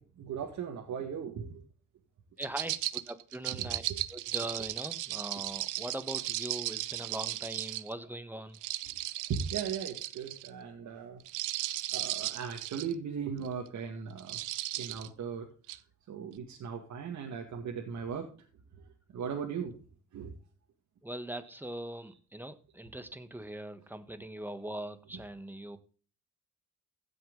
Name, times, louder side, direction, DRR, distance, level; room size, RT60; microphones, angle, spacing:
voice 1, 0.0-1.6 3.5-4.0 6.8-6.9 7.9-8.4 9.3-11.2 11.9-14.4 14.7-15.5 16.1-18.3 19.1-19.7 20.1-20.3 21.4-21.6 24.6-24.8, right 7 dB, 65° right, 1 dB, 2.0 m, -38 dB
voice 2, 2.4-3.8 4.1-8.6 21.0-25.8, right 1 dB, 5° right, 11 dB, 1.4 m, -41 dB
sound 1, 2.4-7.9 8.5-10.5 11.2-12.9 13.4-13.7 14.2-15.1 15.7-15.8, right 16 dB, 90° right, 0.7 m, -36 dB
15.5 x 6.3 x 3.9 m, 0.38 s
cardioid pair, 90°, 30 cm